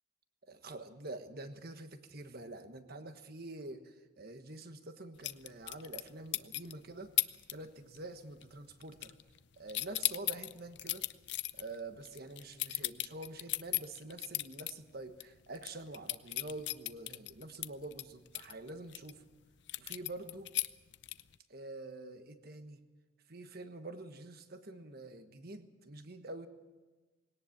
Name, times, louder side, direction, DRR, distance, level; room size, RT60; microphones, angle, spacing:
voice 1, 0.5-7.1 7.5-9.1 9.6-11.0 11.5-19.2 19.8-20.5 21.5-22.8 23.3-26.5, right 2 dB, 50° right, 8 dB, 1.4 m, -47 dB
sound 1, 5.2-6.1 6.3-6.7 7.2-7.5 7.8-8.2 8.4-9.4 9.7-14.7 15.1-15.2 15.6-19.1 19.7-21.4, left 16 dB, 60° left, 0.6 m, -36 dB
20.0 x 18.0 x 7.3 m, 1.3 s
head